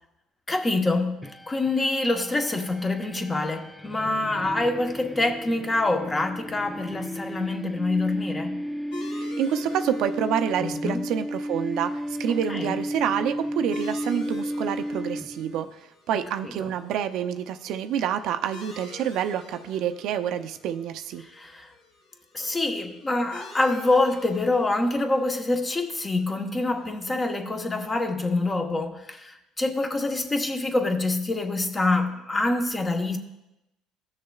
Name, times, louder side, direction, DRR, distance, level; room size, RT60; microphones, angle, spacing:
voice 1, 0.5-8.6 10.6-11.0 12.5-12.7 16.4-16.7 21.2-21.7 22.3-33.2, left 2 dB, 20° left, 1.0 m, -26 dB
sound 1, 1.2-15.7, equal, 5° left, 0.4 m, -34 dB
sound 2, 8.9-28.1, left 2 dB, 90° left, 2.8 m, -48 dB
voice 2, 9.4-15.7 16.1-21.2, right 9 dB, 70° right, 0.5 m, -28 dB
16.5 x 6.5 x 2.4 m
cardioid pair, 105°, 0 cm